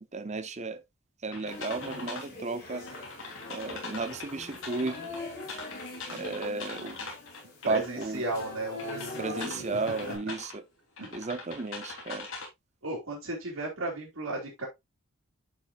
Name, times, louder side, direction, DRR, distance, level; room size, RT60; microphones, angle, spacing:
voice 1, 0.1-0.8 1.2-2.8 3.5-5.0 6.1-7.1 7.7-8.2 9.2-10.6 11.1-12.3, right 3 dB, 30° right, 0.7 m, -34 dB
sound 1, 1.3-2.3 2.9-8.5 8.7-10.5 11.0-12.5, left 3 dB, 70° left, 3.4 m, -42 dB
sound 2, 1.5-10.2, left 2 dB, 45° left, 4.3 m, -42 dB
voice 2, 7.6-10.1 11.0-11.1 12.8-14.7, right 2 dB, 80° right, 3.1 m, -35 dB
10.5 x 5.8 x 2.5 m
head